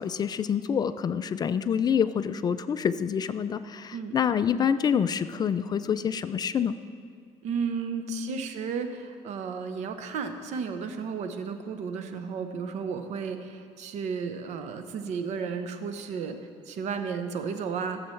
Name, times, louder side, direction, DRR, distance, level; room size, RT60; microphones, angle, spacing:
voice 1, 0.0-6.7 8.1-8.4, left 7 dB, 35° left, 12 dB, 0.3 m, -27 dB
voice 2, 7.4-16.4 16.6-18.0, right 6 dB, 70° right, 8 dB, 0.9 m, -33 dB
17.0 x 7.8 x 3.2 m, 2.3 s
cardioid pair, 120°, 12 cm